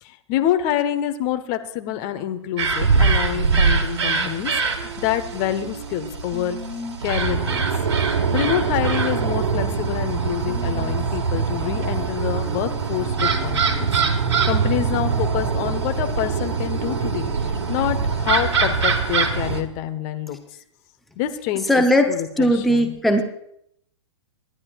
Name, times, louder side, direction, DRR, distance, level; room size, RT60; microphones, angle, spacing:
voice 1, 0.0-6.6 7.0-7.6 8.3-13.9 14.5-20.4 21.2-22.9, left 11 dB, 30° left, 9 dB, 0.9 m, -27 dB
crow-calls, 2.6-19.6, right 5 dB, 60° right, 1.8 m, -23 dB
sound 1, 3.3-8.2 8.4-8.5 8.8-8.9 9.4-10.0 10.3-14.0, right 1 dB, 15° right, 2.0 m, -39 dB
voice 2, 21.7-23.2, equal, ahead, 5 dB, 0.7 m, -18 dB
26.5 x 11.0 x 2.4 m, 0.72 s
figure-of-eight pair, 110°, 16 cm